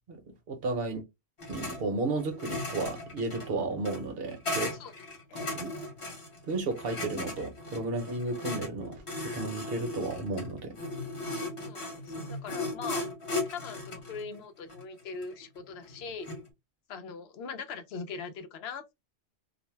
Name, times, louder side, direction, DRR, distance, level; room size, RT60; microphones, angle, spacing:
voice 1, 0.1-1.0 1.5-4.8 5.5-5.7 6.5-10.8, right 3 dB, 60° right, 1.0 m, -33 dB
sound 1, 1.4-1.8 2.1-16.5, left 2 dB, 30° left, 0.8 m, -37 dB
voice 2, 11.6-13.0 13.5-16.3 16.9-18.9, left 5 dB, 70° left, 0.8 m, -41 dB
2.5 x 2.1 x 3.1 m
omnidirectional pair, 1.2 m